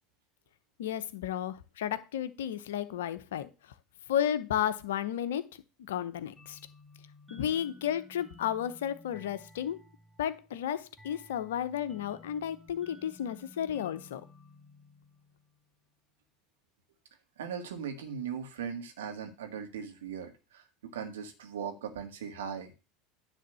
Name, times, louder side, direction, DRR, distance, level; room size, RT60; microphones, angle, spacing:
voice 1, 0.8-3.5 4.1-5.5 5.9-6.6 7.3-9.8 10.2-14.2, left 10 dB, 75° left, 13 dB, 0.8 m, -33 dB
sound 1, 6.4-15.7, left 2 dB, 5° left, 1.8 m, -55 dB
voice 2, 17.4-22.7, right 7 dB, 80° right, 4 dB, 1.8 m, -39 dB
10.0 x 3.5 x 6.9 m, 0.30 s
hypercardioid pair, 75°, 0 cm